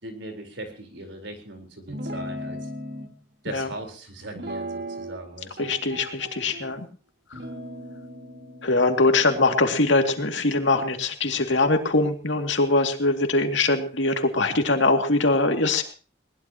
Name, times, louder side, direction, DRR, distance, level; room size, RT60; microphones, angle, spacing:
voice 1, 0.0-2.7 3.4-5.7, right 2 dB, 80° right, 4 dB, 4.4 m, -39 dB
Guitar, 1.9-3.1 4.3-5.3 5.6-6.7 7.3-10.8, equal, 60° right, 2.3 m, -38 dB
voice 2, 5.6-6.9 8.6-15.8, left 2 dB, 90° left, 5 dB, 2.5 m, -22 dB
21.0 x 20.0 x 3.0 m, 0.37 s
head